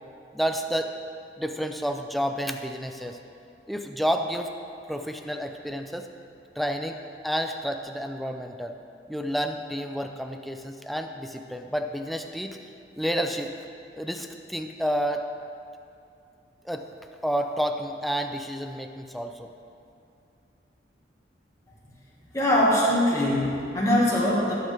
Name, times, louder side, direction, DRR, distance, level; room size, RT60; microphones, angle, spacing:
voice 1, 0.3-0.9 1.4-3.2 3.7-4.5 4.9-6.1 6.6-8.8 9.1-12.6 13.0-13.5 13.9-15.3 16.6-16.9 17.2-19.5, equal, ahead, 5 dB, 0.5 m, -30 dB
voice 2, 22.3-24.5, left 1 dB, 15° left, -6 dB, 1.9 m, -22 dB
17.5 x 8.3 x 3.5 m, 2.5 s
head